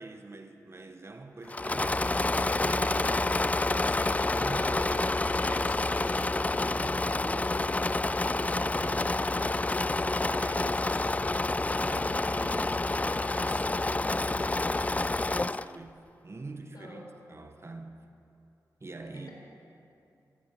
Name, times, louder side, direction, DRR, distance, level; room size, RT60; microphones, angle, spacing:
voice 1, 0.0-7.8 8.3-18.0 18.8-19.3, right 2 dB, 35° right, 6 dB, 1.1 m, -45 dB
Engine / Mechanisms, 1.5-15.7, left 2 dB, 20° left, 0.3 m, -28 dB
Water, 2.0-7.2, left 2 dB, 45° left, 2.7 m, -53 dB
sound 1, 6.9-7.7 9.3-10.2 12.5-13.3, left 6 dB, 85° left, 0.6 m, -52 dB
voice 2, 16.7-17.1 19.0-19.3, left 1 dB, 65° left, -3 dB, 4.8 m, -49 dB
14.0 x 13.5 x 7.6 m, 2.6 s
cardioid pair, 55°, 7 cm